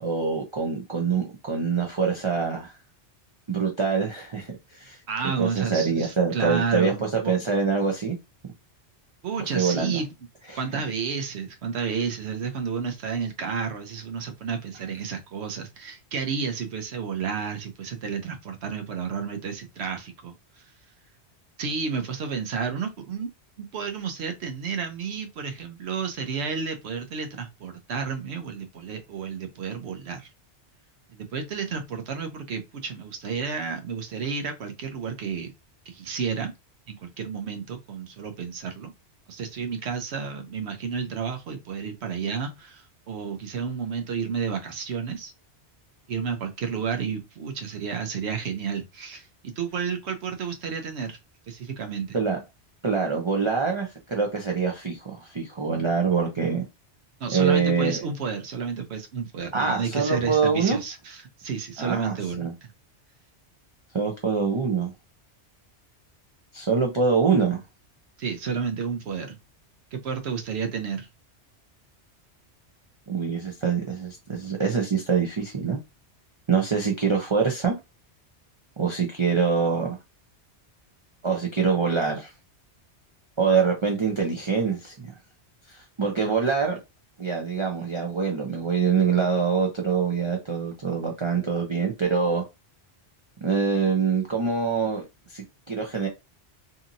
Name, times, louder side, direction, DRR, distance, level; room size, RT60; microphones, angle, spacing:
voice 1, 0.0-2.8 3.5-5.0 5.4-8.2 9.4-10.0 10.5-10.6 52.1-52.4 52.8-56.6 57.3-58.0 59.5-60.8 61.8-62.5 63.9-64.9 66.5-67.6 73.1-75.8 76.5-77.7 78.8-80.0 81.2-82.3 83.4-85.1 85.7-86.8 87.2-92.4 93.4-96.1, right 5 dB, 40° right, 0.4 m, -25 dB
voice 2, 5.1-7.3 9.2-10.1 10.6-20.6 21.6-23.3 23.6-30.3 31.1-35.5 35.9-36.5 36.9-38.9 39.3-45.3 46.1-51.2 51.5-52.2 57.2-62.7 68.2-69.4 69.9-71.1, right 6 dB, 75° right, 0.9 m, -31 dB
2.8 x 2.6 x 2.5 m
omnidirectional pair, 1.2 m